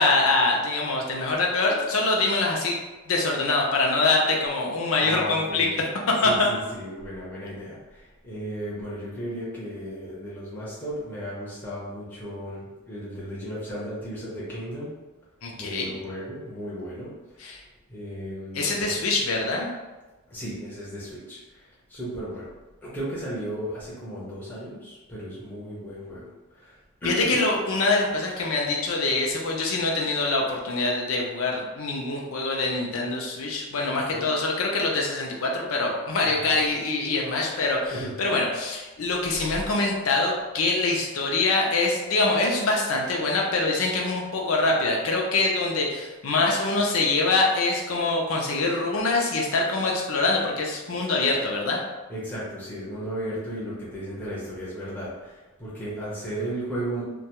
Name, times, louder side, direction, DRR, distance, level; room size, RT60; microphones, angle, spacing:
voice 1, 0.0-2.8 3.1-5.7 6.1-6.5 15.4-15.9 17.4-17.6 18.5-19.7 27.0-51.8, left 3 dB, 70° left, -1 dB, 0.5 m, -24 dB
voice 2, 5.0-14.9 15.6-17.1 17.5-17.6 17.9-18.9 20.3-22.5 22.8-26.2 26.5-27.5 33.9-34.3 36.2-36.6 37.9-38.3 39.4-39.6 52.1-57.0, right 1 dB, 10° left, -9 dB, 0.6 m, -35 dB
2.3 x 2.2 x 2.9 m, 1.2 s
head